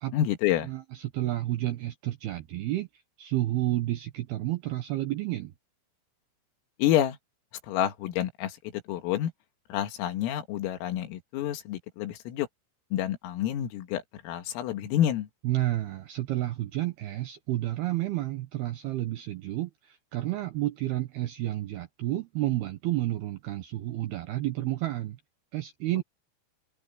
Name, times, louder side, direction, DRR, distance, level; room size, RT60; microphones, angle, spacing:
voice 1, 0.1-0.7 6.8-7.2 7.6-9.3 9.7-12.5 12.9-15.3, left 11 dB, 85° left, 4.5 m, -28 dB
voice 2, 0.7-2.9 3.2-5.5 15.4-25.2 25.5-26.0, right 16 dB, 75° right, 2.3 m, -30 dB
open air
omnidirectional pair, 5.9 m